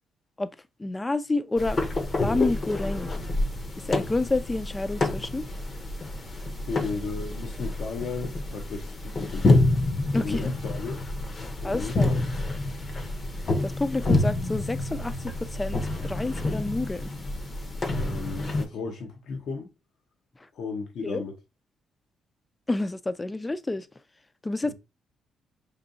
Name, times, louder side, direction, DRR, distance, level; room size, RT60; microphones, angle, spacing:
voice 1, 0.8-1.8 2.2-3.1 3.9-5.5 10.1-10.5 11.6-12.1 13.6-17.1 21.0-21.2 22.7-23.9 24.4-24.7, left 2 dB, 20° left, 0.4 m, -29 dB
sound 1, 1.6-18.7, left 2 dB, 40° left, 0.7 m, -28 dB
voice 2, 6.7-9.5 10.1-11.0 11.4-12.3 18.0-19.7 20.5-21.4 24.6-24.7, left 4 dB, 70° left, 0.8 m, -35 dB
5.1 x 2.6 x 2.6 m
cardioid pair, 90°, 0 cm